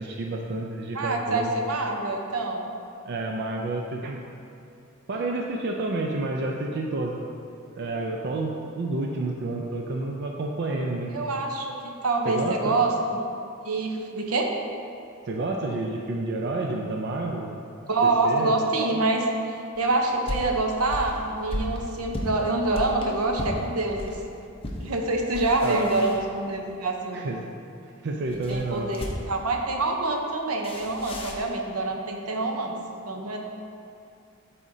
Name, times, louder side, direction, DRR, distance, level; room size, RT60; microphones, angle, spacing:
voice 1, 0.0-1.5 3.1-4.2 5.1-7.2 7.8-11.1 12.2-12.7 15.3-17.6 18.2-18.5 25.6-25.8 27.1-27.4 28.0-28.9, right 2 dB, 50° right, 0 dB, 0.4 m, -29 dB
voice 2, 0.9-2.7 11.1-11.7 12.0-13.2 13.6-14.5 17.9-24.1 24.8-27.2 28.3-32.7 33.0-33.4, right 2 dB, 80° right, 2 dB, 0.8 m, -26 dB
footsteps socks parquet, 19.7-24.2 24.6-24.9 25.2-26.7 28.3-29.5 30.6-31.5, left 1 dB, 25° left, 0.7 m, -35 dB
12.0 x 4.2 x 2.7 m, 2.5 s
head